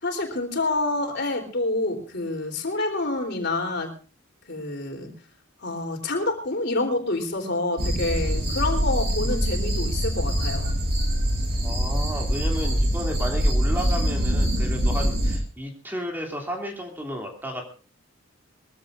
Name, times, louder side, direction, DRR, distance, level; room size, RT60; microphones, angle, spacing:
voice 1, 0.0-3.9 4.5-5.1 5.6-10.7, left 2 dB, 55° left, 4 dB, 3.8 m, -27 dB
sound 1, 7.8-15.4, equal, 50° right, 5.3 m, -24 dB
voice 2, 11.6-17.6, equal, 10° right, 1 dB, 2.9 m, -33 dB
23.0 x 15.0 x 2.6 m, 0.36 s
head